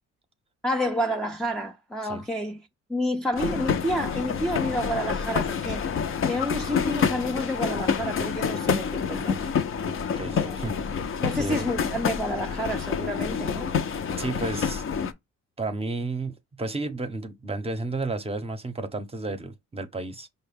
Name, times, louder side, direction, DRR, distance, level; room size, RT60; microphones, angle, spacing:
voice 1, 0.6-2.6 2.9-5.9 6.2-9.6 10.3-10.6 11.2-13.7, equal, ahead, 0.4 m, -29 dB
sound 1, 3.4-15.1, left 6 dB, 45° left, 0.6 m, -28 dB
voice 2, 9.8-10.8 11.4-11.6 14.2-14.8 15.6-20.3, right 2 dB, 20° right, 0.8 m, -32 dB
5.4 x 2.2 x 3.4 m
cardioid pair, 90°, 30 cm